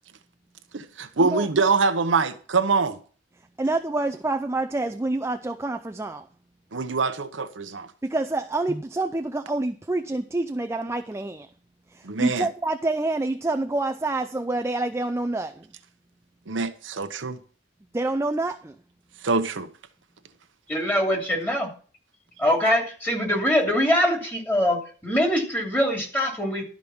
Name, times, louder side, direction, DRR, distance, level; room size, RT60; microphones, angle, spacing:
voice 1, 0.7-3.0 6.7-7.9 12.0-12.5 16.5-17.4 19.2-19.7, right 4 dB, 75° right, 0.9 m, -24 dB
voice 2, 3.6-6.3 8.0-11.5 11.9-15.7 17.9-18.7, right 2 dB, 15° right, 0.4 m, -27 dB
voice 3, 20.7-21.7 22.4-26.6, equal, 10° left, 2.8 m, -23 dB
12.0 x 5.1 x 7.1 m
head